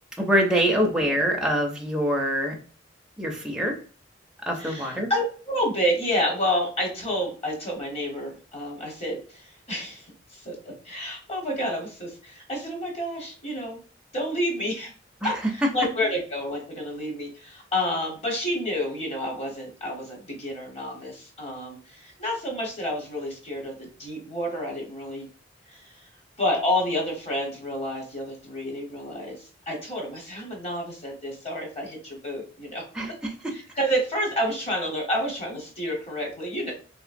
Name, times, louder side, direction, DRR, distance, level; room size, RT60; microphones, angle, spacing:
voice 1, 0.2-2.5 3.2-3.8 4.5-5.1 15.2-15.3 32.9-33.5, equal, 5° right, 0 dB, 0.5 m, -24 dB
voice 2, 4.6-13.8 14.1-14.9 15.2-25.3 25.7-26.1 26.4-32.8 33.5-36.7, equal, 35° left, 0 dB, 1.1 m, -29 dB
3.0 x 2.9 x 2.5 m, 0.38 s
head